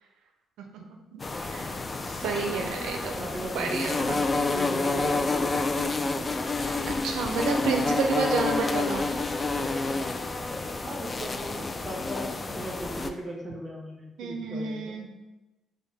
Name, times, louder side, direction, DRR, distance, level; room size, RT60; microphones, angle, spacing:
voice 1, 0.6-1.8 2.1-3.1 3.5-4.2 6.9-9.1 14.2-15.1, right 4 dB, 90° right, 3 dB, 0.4 m, -31 dB
sound 1, 1.2-13.1, left 3 dB, 30° left, 0.3 m, -29 dB
voice 2, 2.3-2.7 3.2-4.1 4.5-6.2 10.8-15.0, equal, 20° right, -2 dB, 1.1 m, -38 dB
5.3 x 2.1 x 3.3 m, 1.1 s
cardioid pair, 90°, 0 cm